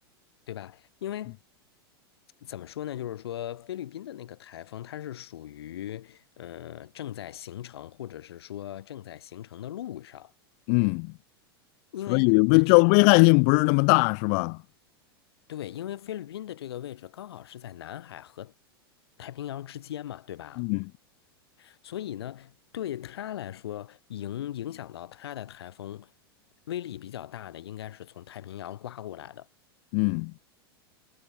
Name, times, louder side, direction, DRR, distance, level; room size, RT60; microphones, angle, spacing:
voice 1, 0.5-1.4 2.4-10.3 11.9-13.3 15.5-18.5 19.2-20.7 21.6-26.1 26.7-29.5, left 11 dB, 80° left, 3.2 m, -39 dB
voice 2, 10.7-11.1 12.1-14.6 20.6-20.8 29.9-30.3, left 40 dB or more, 50° left, 0.5 m, -20 dB
hypercardioid pair, 110°, 13 cm